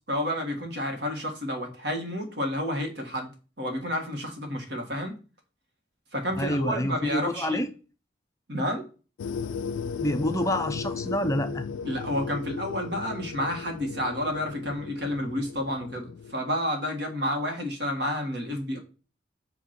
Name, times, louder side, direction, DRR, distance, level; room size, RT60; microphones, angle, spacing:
voice 1, 0.1-3.3 3.6-5.2 6.1-7.6 8.5-8.9 11.8-18.8, equal, 65° right, 1.5 m, -30 dB
voice 2, 6.4-7.7 10.0-11.6, left 1 dB, 15° left, 0.4 m, -27 dB
sound 1, 9.2-16.3, left 6 dB, 90° left, 0.3 m, -36 dB
7.8 x 2.9 x 5.7 m
head